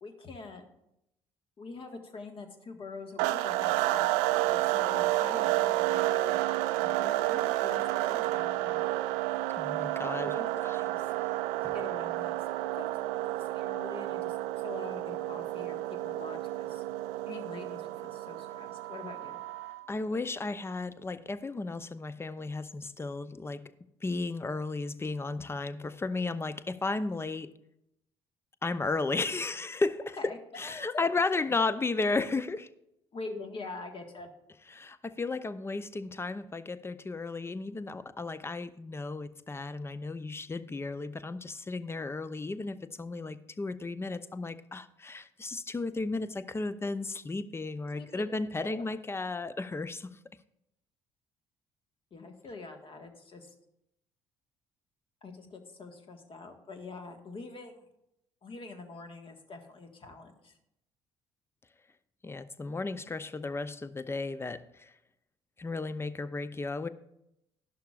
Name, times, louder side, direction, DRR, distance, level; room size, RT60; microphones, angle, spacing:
voice 1, 0.0-0.6 1.6-4.1 4.4-6.4 6.8-8.9 10.2-11.1 11.6-14.4 14.6-16.8 17.3-19.4 30.2-31.1 33.1-34.3 47.9-48.2 48.6-48.9 52.1-53.5 55.2-57.9 58.4-60.6, left 3 dB, 40° left, 5 dB, 1.6 m, -45 dB
sound 1, 3.2-19.9, right 16 dB, 65° right, 0.4 m, -30 dB
voice 2, 9.6-10.4 10.6-10.8 19.9-23.6 24.0-27.5 28.6-32.7 34.7-50.1 62.2-64.9 65.6-66.9, left 3 dB, 15° left, 15 dB, 0.6 m, -34 dB
13.0 x 11.5 x 2.5 m, 0.82 s
figure-of-eight pair, 50°, 14 cm